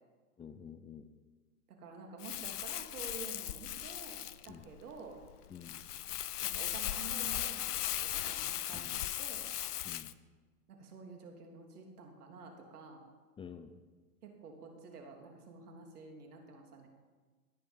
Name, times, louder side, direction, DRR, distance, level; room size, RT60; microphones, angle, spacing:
voice 1, 0.4-1.1 4.5-4.7 5.5-5.8 8.7-9.0 9.8-10.1 13.4-13.8, left 7 dB, 10° left, 9 dB, 0.5 m, -49 dB
voice 2, 1.7-5.2 6.4-9.5 10.7-13.0 14.2-16.9, right 4 dB, 75° right, 3 dB, 3.3 m, -50 dB
Crumpling crinkling, 2.2-10.1, left 13 dB, 80° left, 0.8 m, -38 dB
17.5 x 10.0 x 5.3 m, 1.4 s
hypercardioid pair, 115°, 45 cm